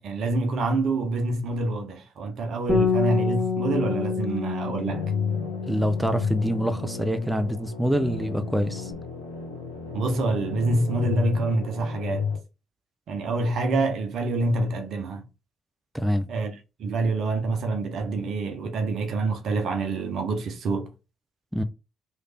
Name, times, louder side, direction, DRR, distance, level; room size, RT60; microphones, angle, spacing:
voice 1, 0.0-5.0 9.9-12.3 13.1-15.2 16.3-20.9, right 2 dB, 60° right, 0.9 m, -26 dB
Bass guitar, 2.7-7.4 7.6-8.9, left 5 dB, 20° left, 1.8 m, -29 dB
sound 1, 4.9-12.4, left 6 dB, 85° left, 0.7 m, -32 dB
voice 2, 5.7-8.9 15.9-16.3 21.5-21.6, equal, 5° right, 0.6 m, -25 dB
3.2 x 2.6 x 4.1 m
figure-of-eight pair, 45°, 0 cm